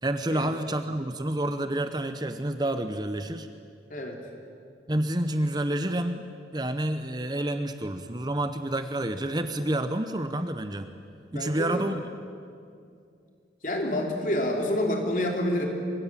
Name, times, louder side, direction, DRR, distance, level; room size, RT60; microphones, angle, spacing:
voice 1, 0.0-3.5 4.9-6.2 6.5-10.9 11.3-12.0, right 1 dB, 25° right, 9 dB, 0.8 m, -29 dB
voice 2, 11.3-11.9 13.6-15.7, left 1 dB, 45° left, 2 dB, 3.3 m, -28 dB
24.5 x 22.0 x 7.5 m, 2.4 s
head